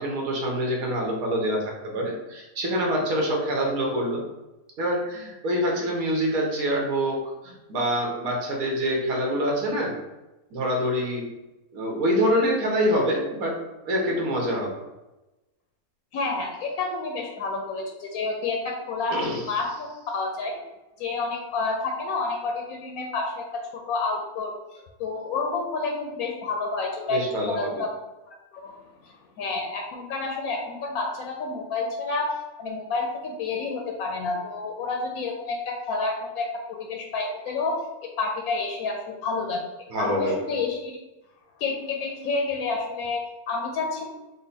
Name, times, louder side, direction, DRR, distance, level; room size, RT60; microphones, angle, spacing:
voice 1, 0.0-4.2 4.8-9.9 10.5-11.3 11.7-13.6 13.8-14.8 19.1-19.4 27.1-27.7 39.9-40.6, equal, 75° right, -1 dB, 1.4 m, -26 dB
voice 2, 16.1-20.5 21.0-23.4 23.7-24.6 25.0-27.2 27.5-27.9 28.5-37.8 38.2-39.6 40.0-40.9 41.6-44.1, left 3 dB, 80° left, 1 dB, 1.0 m, -29 dB
4.0 x 2.2 x 4.0 m, 1.0 s
omnidirectional pair, 1.5 m